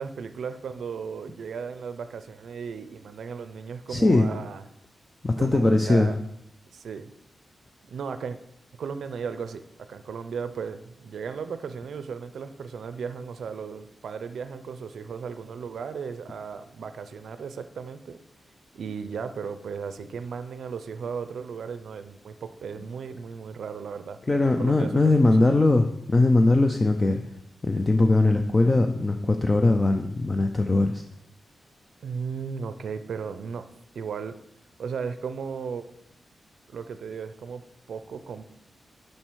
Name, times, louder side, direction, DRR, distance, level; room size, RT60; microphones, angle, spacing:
voice 1, 0.0-4.6 5.4-6.2 6.7-7.1 7.9-8.4 8.8-9.6 9.9-18.2 18.7-24.2 24.4-25.5 32.0-33.7 33.9-34.4 34.8-35.9 36.7-37.6 37.9-38.4, right 6 dB, 75° right, 10 dB, 0.4 m, -35 dB
voice 2, 3.9-4.3 5.2-6.1 24.3-27.2 27.6-31.0, left 2 dB, 20° left, 6 dB, 0.4 m, -20 dB
7.3 x 5.4 x 4.6 m, 0.78 s
wide cardioid pair, 165°, 0 cm